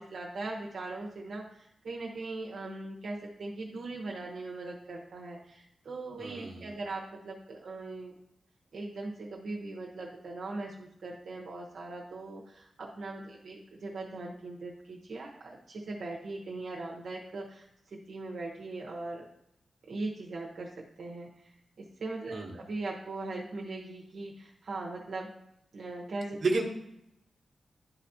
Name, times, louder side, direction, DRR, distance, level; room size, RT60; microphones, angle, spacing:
voice 1, 0.0-8.1 8.7-19.3 19.9-21.3 21.8-25.3 25.7-26.4, right 2 dB, 60° right, -3 dB, 1.0 m, -40 dB
voice 2, 6.2-6.7 22.3-22.5 26.4-26.6, right 3 dB, 40° right, -2 dB, 1.3 m, -31 dB
11.5 x 4.1 x 2.8 m, 0.78 s
wide cardioid pair, 160°, 0 cm